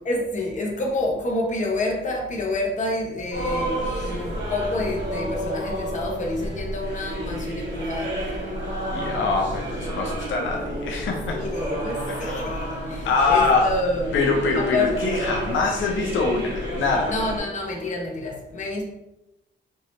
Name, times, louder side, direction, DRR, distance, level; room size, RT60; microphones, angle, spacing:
voice 1, 0.0-8.2 11.3-14.2 14.6-15.0 17.0-18.8, left 2 dB, 40° left, -1 dB, 1.0 m, -28 dB
sound 1, 3.3-17.4, right 1 dB, 65° right, 1.4 m, -30 dB
voice 2, 8.9-11.4 12.2-12.3 13.0-13.7 14.1-17.1, left 3 dB, 90° left, 0 dB, 0.7 m, -23 dB
4.5 x 2.8 x 3.2 m, 0.92 s
cardioid pair, 105°, 20 cm